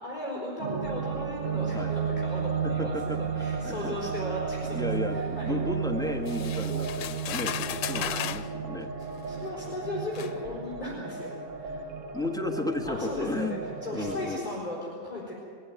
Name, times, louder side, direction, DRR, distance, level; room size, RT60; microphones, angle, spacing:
voice 1, 0.0-4.9 5.1-5.7 7.9-8.1 9.3-12.2 12.9-13.6 13.8-15.3, left 1 dB, 20° left, -5 dB, 4.3 m, -37 dB
sound 1, 0.6-14.4, right 6 dB, 50° right, 1.1 m, -33 dB
voice 2, 2.6-4.1 4.7-8.9 12.1-13.6 13.9-14.4, left 2 dB, ahead, 3 dB, 1.3 m, -33 dB
sound 2, 6.3-8.5 9.4-9.5 10.2-10.3, left 11 dB, 85° left, 1.4 m, -34 dB
21.5 x 15.5 x 9.4 m, 2.4 s
omnidirectional pair, 1.9 m